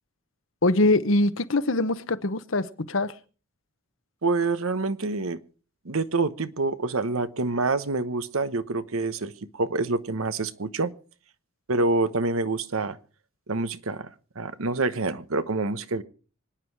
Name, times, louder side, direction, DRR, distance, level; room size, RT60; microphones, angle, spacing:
voice 1, 0.6-3.1, left 2 dB, 70° left, 1.0 m, -23 dB
voice 2, 4.2-5.4 5.8-10.9 11.7-13.0 13.5-16.0, right 3 dB, 90° right, 1.1 m, -27 dB
25.5 x 10.0 x 4.7 m
head